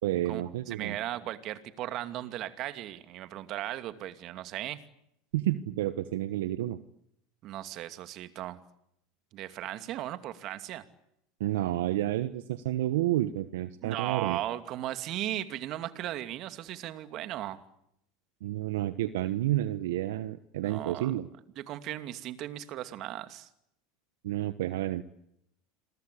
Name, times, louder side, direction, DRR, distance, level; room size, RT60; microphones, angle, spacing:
voice 1, 0.0-0.9 5.3-6.8 11.4-14.4 18.4-21.3 24.2-25.0, right 14 dB, 75° right, 13 dB, 1.2 m, -30 dB
voice 2, 0.7-4.8 7.4-8.6 9.3-10.8 13.8-17.6 20.6-21.1 21.6-23.5, right 13 dB, 50° right, 11 dB, 2.5 m, -37 dB
28.0 x 23.0 x 8.6 m, 0.76 s
hypercardioid pair, 95°, 0 cm